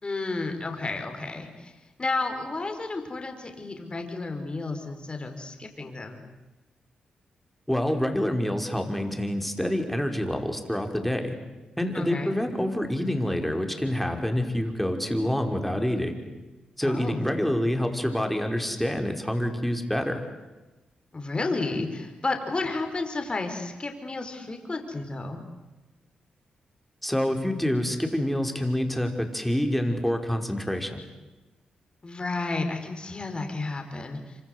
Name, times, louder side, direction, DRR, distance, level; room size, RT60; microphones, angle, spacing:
voice 1, 0.0-1.7 2.0-6.2 11.9-12.3 16.8-17.3 21.1-25.4 32.0-34.4, left 3 dB, 35° left, 5 dB, 5.4 m, -32 dB
voice 2, 7.7-11.4 11.8-16.2 16.8-20.2 27.0-31.0, left 1 dB, 5° left, 4 dB, 5.5 m, -27 dB
27.0 x 26.5 x 8.3 m, 1.1 s
supercardioid pair, 45°, 3 cm